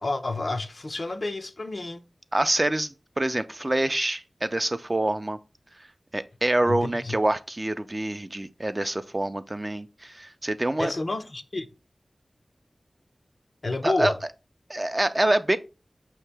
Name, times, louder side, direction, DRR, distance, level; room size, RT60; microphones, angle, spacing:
voice 1, 0.0-2.0 6.6-7.1 10.8-11.7 13.6-14.2, left 2 dB, 60° left, 0.5 m, -29 dB
voice 2, 2.3-5.4 5.8-5.9 6.1-10.9 13.8-14.1 14.7-15.6, right 1 dB, 30° right, 0.3 m, -26 dB
5.3 x 2.8 x 3.3 m
wide cardioid pair, 55°, 0 cm